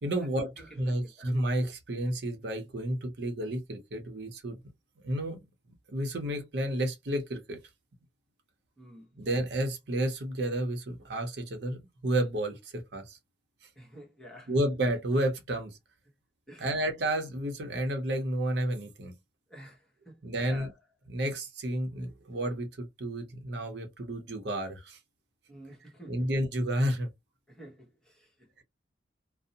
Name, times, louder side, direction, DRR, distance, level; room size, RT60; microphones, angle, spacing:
voice 1, 0.0-4.6 5.0-5.4 5.9-7.6 9.2-13.2 14.5-15.8 16.6-19.1 20.2-20.7 21.1-25.0 26.1-27.1, right 1 dB, 70° right, 0.7 m, -31 dB
voice 2, 0.6-1.3 8.8-9.4 13.8-14.5 16.5-16.7 19.5-20.7 25.5-26.3 27.5-28.6, equal, 5° left, 0.9 m, -50 dB
2.6 x 2.0 x 2.7 m
head